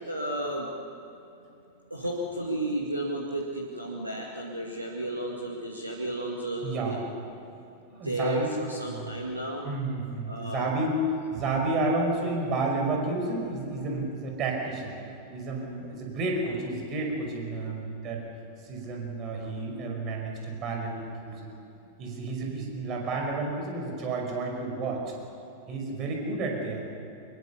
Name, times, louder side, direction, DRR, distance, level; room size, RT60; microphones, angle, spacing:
voice 1, 0.1-0.7 1.9-7.0 8.0-9.7 10.3-10.7, right 1 dB, 85° right, -1 dB, 2.1 m, -32 dB
voice 2, 6.6-7.0 8.0-8.5 8.9-9.3 9.6-11.0 11.3-14.9 15.3-18.2 18.6-21.5 22.0-25.0 25.7-26.9, right 3 dB, 35° right, 1 dB, 5.5 m, -31 dB
24.5 x 22.0 x 7.1 m, 2.8 s
figure-of-eight pair, 90°, 0 cm